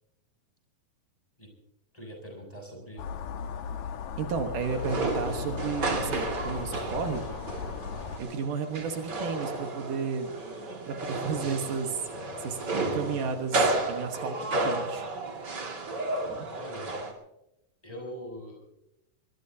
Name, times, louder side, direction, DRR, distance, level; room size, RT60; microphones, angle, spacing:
voice 1, 1.9-3.1 16.5-17.0 17.8-18.6, equal, 10° left, 1 dB, 6.4 m, -42 dB
sound 1, 3.0-8.2, left 7 dB, 70° left, 2.2 m, -37 dB
voice 2, 4.2-7.2 8.2-10.3 10.9-12.0 12.4-12.6 12.9-15.4 16.3-16.5, right 6 dB, 75° right, 5 dB, 2.9 m, -33 dB
sound 2, 4.6-17.1, right 2 dB, 35° right, 2.5 m, -32 dB
22.5 x 21.5 x 2.8 m, 0.86 s
omnidirectional pair, 3.8 m